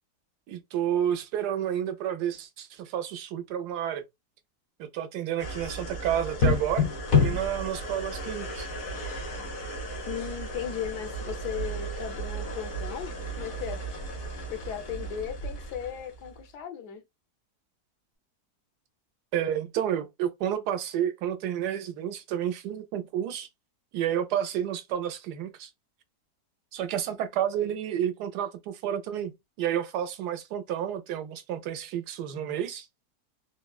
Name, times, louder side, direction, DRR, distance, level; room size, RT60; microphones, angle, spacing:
voice 1, 0.5-4.0 4.8-6.9 7.2-8.7 19.3-23.5 23.9-25.7 26.7-29.3 29.6-32.9, right 10 dB, 85° right, 1.2 m, -30 dB
sound 1, 5.4-16.5, left 3 dB, 60° left, 1.2 m, -31 dB
voice 2, 10.1-13.8 14.5-17.0, left 9 dB, 85° left, 1.2 m, -36 dB
3.5 x 2.1 x 2.3 m
omnidirectional pair, 1.7 m